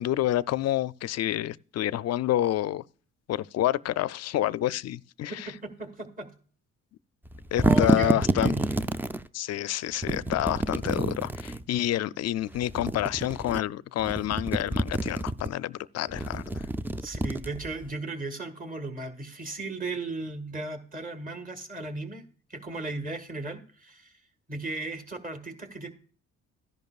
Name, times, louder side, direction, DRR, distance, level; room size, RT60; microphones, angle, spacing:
voice 1, 0.0-2.8 3.3-5.5 7.5-8.5 9.3-16.7, left 13 dB, 60° left, 0.4 m, -28 dB
voice 2, 5.3-6.3 7.6-8.8 17.0-22.2 22.5-24.1 24.5-25.9, right 2 dB, 30° right, 1.7 m, -36 dB
sound 1, 7.3-9.2 10.0-11.6 12.6-13.6 14.0-15.5 16.1-17.9, right 2 dB, 5° right, 0.4 m, -28 dB
13.5 x 10.5 x 2.4 m
cardioid pair, 90°, 30 cm